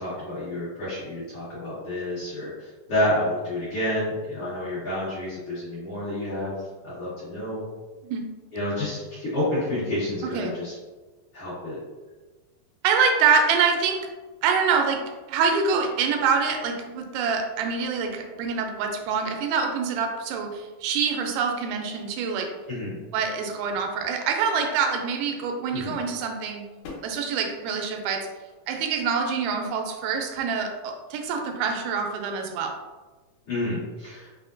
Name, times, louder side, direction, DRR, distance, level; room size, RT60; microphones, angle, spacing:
voice 1, 0.0-6.6 6.8-7.6 8.5-10.7 11.3-11.8 22.7-23.0 25.7-26.0 33.5-34.3, left 1 dB, 60° left, -12 dB, 1.6 m, -29 dB
voice 2, 12.8-14.0 14.4-15.0 15.3-22.5 23.1-26.6 27.0-28.2 28.7-32.7, right 5 dB, 85° right, 3 dB, 2.4 m, -25 dB
Books dropping from bookshelf, 26.8-27.3 28.1-28.8 29.6-29.7 30.1-30.3, left 3 dB, 80° left, 2.5 m, -44 dB
5.6 x 2.1 x 2.4 m, 1.2 s
omnidirectional pair, 4.2 m